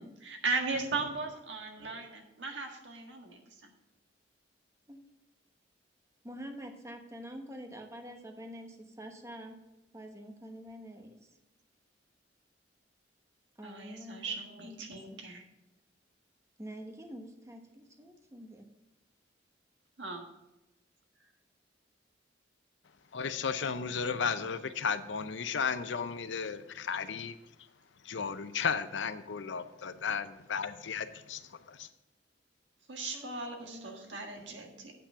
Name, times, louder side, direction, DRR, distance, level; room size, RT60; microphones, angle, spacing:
voice 1, 0.0-3.7 13.6-15.4 20.0-20.3 32.9-34.9, right 3 dB, 75° right, 2 dB, 1.6 m, -37 dB
voice 2, 6.2-9.6 9.9-11.3 13.6-14.4 14.6-15.3 16.6-18.7 33.1-34.8, equal, 15° right, 4 dB, 1.1 m, -47 dB
voice 3, 23.1-27.4 28.0-31.9, left 6 dB, 80° left, 11 dB, 0.6 m, -34 dB
8.4 x 6.0 x 5.5 m, 0.94 s
head